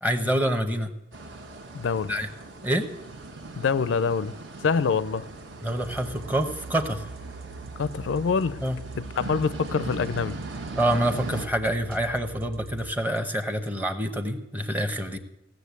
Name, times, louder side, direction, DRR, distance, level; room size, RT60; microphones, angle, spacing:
voice 1, 0.0-0.9 2.1-2.3 2.6-2.9 5.6-7.1 8.6-8.8 10.8-15.2, right 1 dB, 10° right, 0.8 m, -26 dB
sound 1, 1.1-11.5, right 3 dB, 65° right, 1.3 m, -40 dB
voice 2, 1.7-2.2 3.6-5.3 7.8-8.6 9.0-10.4, left 5 dB, 75° left, 0.4 m, -26 dB
sound 2, 5.8-13.7, right 5 dB, 50° right, 0.4 m, -43 dB
16.5 x 6.8 x 8.3 m
head